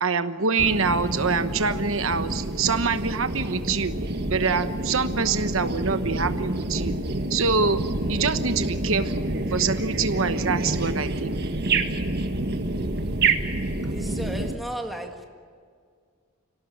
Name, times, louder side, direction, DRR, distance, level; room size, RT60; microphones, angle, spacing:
voice 1, 0.0-3.9 4.3-7.0 7.3-7.8 8.1-11.4, right 4 dB, 65° right, 10 dB, 1.1 m, -25 dB
sound 1, 0.6-14.6, right 2 dB, 50° right, 1.6 m, -28 dB
voice 2, 13.8-15.3, equal, ahead, 2 dB, 1.8 m, -34 dB
25.5 x 17.5 x 8.6 m, 2.1 s
head